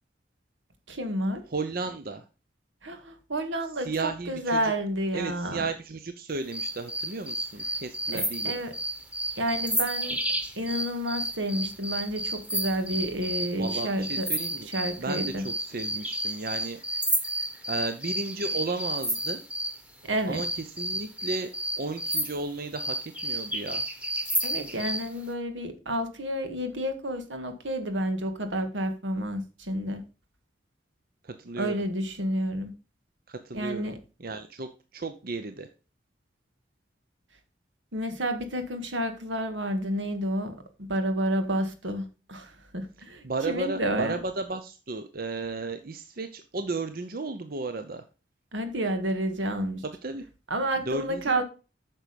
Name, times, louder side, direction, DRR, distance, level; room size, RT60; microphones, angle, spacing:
voice 1, 0.9-1.4 2.8-5.7 8.1-8.7 9.4-10.2 10.6-14.3 14.6-15.5 20.0-20.4 24.4-30.0 31.6-32.7 33.5-34.0 37.9-44.2 48.5-49.8 50.5-51.4, right 1 dB, 85° right, 1.8 m, -30 dB
voice 2, 1.5-2.2 3.8-4.7 5.1-8.6 13.6-14.7 15.0-16.8 17.7-19.4 20.3-20.5 20.7-23.8 31.2-31.9 33.3-33.9 34.2-35.7 43.2-48.0 50.0-50.2 50.8-51.4, right 3 dB, 50° right, 0.8 m, -34 dB
sound 1, 6.5-19.8 20.3-25.1, right 1 dB, 5° right, 1.3 m, -31 dB
8.9 x 6.2 x 5.2 m
head